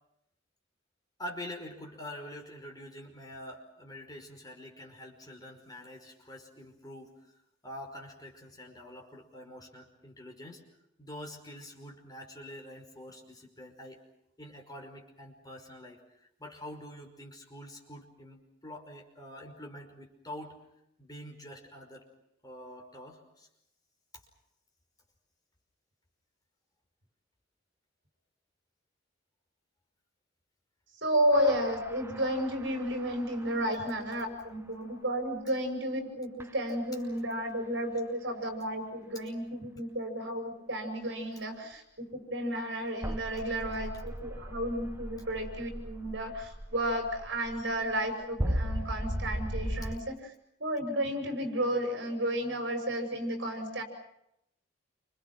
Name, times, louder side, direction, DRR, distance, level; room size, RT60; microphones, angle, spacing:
voice 1, 1.2-7.1 7.6-10.6 11.0-14.0 14.4-20.6 21.0-22.0 22.4-23.5, left 1 dB, 20° left, 2 dB, 5.4 m, -46 dB
voice 2, 31.0-50.2 50.6-53.8, equal, 65° right, 5 dB, 6.5 m, -32 dB
sound 1, 31.3-33.9 36.4-36.5 43.0-50.0, equal, 15° right, 1.1 m, -37 dB
29.0 x 27.5 x 6.1 m, 0.78 s
head